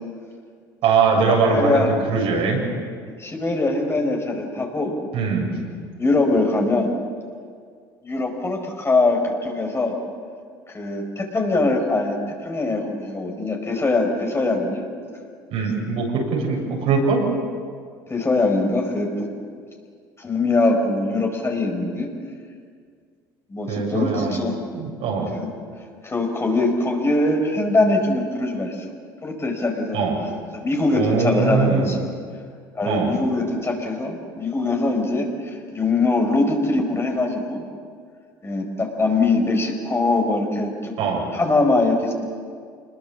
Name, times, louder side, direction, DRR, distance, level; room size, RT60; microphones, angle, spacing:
voice 1, 0.8-2.6 5.1-5.5 15.5-17.2 23.7-24.4 24.7-25.3 29.9-30.2 30.9-31.9 32.8-33.2 41.0-41.2, right 5 dB, 65° right, -1 dB, 7.9 m, -21 dB
voice 2, 1.5-1.9 3.1-4.9 6.0-6.9 8.0-9.9 10.7-12.1 12.4-14.8 18.1-19.3 20.2-22.1 23.5-24.6 25.3-25.5 26.0-28.8 29.2-30.0 30.5-32.0 32.7-37.6 38.4-41.0 41.3-42.1, left 2 dB, 25° left, 2 dB, 5.1 m, -22 dB
26.5 x 21.5 x 7.5 m, 2.1 s
hypercardioid pair, 70°, 11 cm